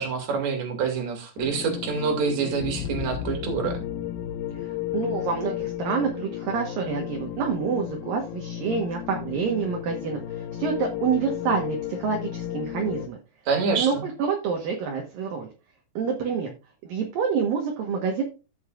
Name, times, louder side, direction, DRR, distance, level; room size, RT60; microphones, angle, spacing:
voice 1, 0.0-3.8 13.5-14.0, right 5 dB, 45° right, 4 dB, 2.8 m, -26 dB
sound 1, 1.4-13.1, left 11 dB, 85° left, 2.3 m, -33 dB
voice 2, 4.9-13.2 13.8-15.5 16.0-16.5 16.8-18.2, right 6 dB, 65° right, 2 dB, 2.5 m, -27 dB
15.5 x 5.5 x 2.4 m, 0.31 s
omnidirectional pair, 5.1 m